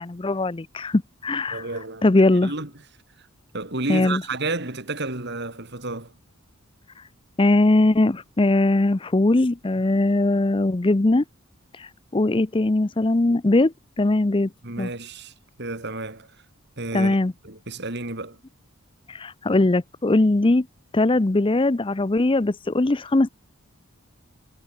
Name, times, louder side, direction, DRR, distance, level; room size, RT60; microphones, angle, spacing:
voice 1, 0.0-1.6 2.0-2.5 3.9-4.2 7.4-11.2 11.7-14.5 14.8-14.9 16.9-17.3 19.1-20.7 20.9-23.3, left 2 dB, 25° left, 0.5 m, -20 dB
voice 2, 1.5-2.1 2.4-2.8 3.2-3.3 3.5-6.1 14.6-16.4 16.8-17.2 17.4-18.4, right 2 dB, 50° right, 3.3 m, -31 dB
head